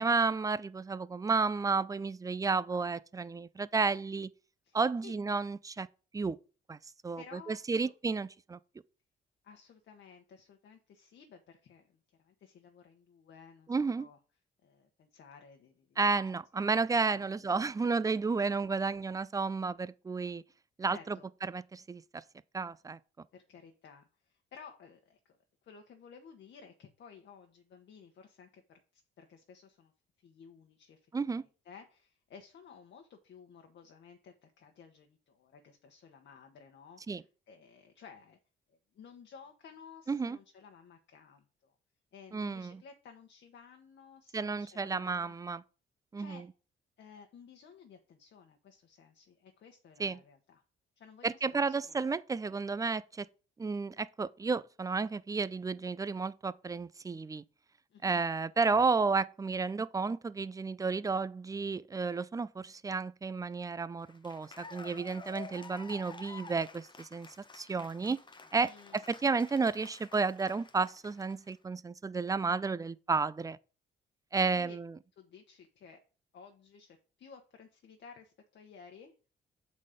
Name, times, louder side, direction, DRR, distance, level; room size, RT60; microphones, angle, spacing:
voice 1, 0.0-4.3 4.7-5.9 6.1-6.4 6.7-6.8 7.0-8.6 13.7-14.1 16.0-20.4 20.8-21.2 21.5-22.2 22.5-23.0 31.1-31.4 37.1-37.2 40.1-40.4 42.3-42.8 44.3-45.6 46.1-46.5 50.0-50.2 51.2-53.3 53.6-57.4 58.0-67.3 67.5-68.2 68.5-73.6 74.3-74.9, right 4 dB, 15° right, 0.4 m, -32 dB
voice 2, 4.6-5.1 7.2-7.9 9.4-14.2 14.6-16.0 17.1-17.3 20.9-21.3 23.3-25.4 25.6-29.9 30.2-31.1 31.4-38.4 38.7-41.7 42.1-45.3 46.2-46.5 47.0-50.6 51.0-52.1 57.9-58.2 68.6-69.0 74.6-74.8 75.2-76.0 76.3-79.1, left 6 dB, 65° left, 1.1 m, -55 dB
Cheering / Applause, 64.0-71.5, left 4 dB, 25° left, 0.9 m, -51 dB
7.3 x 4.2 x 5.0 m
cardioid pair, 90°, 20 cm